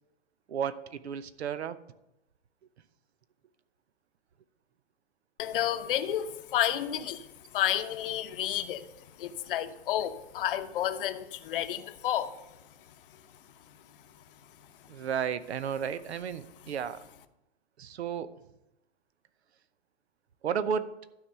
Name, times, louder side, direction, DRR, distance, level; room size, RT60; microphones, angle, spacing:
voice 1, 0.5-1.8 14.9-17.0 17.8-18.3 20.4-20.9, right 7 dB, 70° right, 14 dB, 0.8 m, -33 dB
voice 2, 5.4-7.3 7.5-8.9 9.2-12.4, left 11 dB, 50° left, 9 dB, 0.9 m, -31 dB
12.0 x 4.8 x 6.7 m, 0.90 s
hypercardioid pair, 125°, 34 cm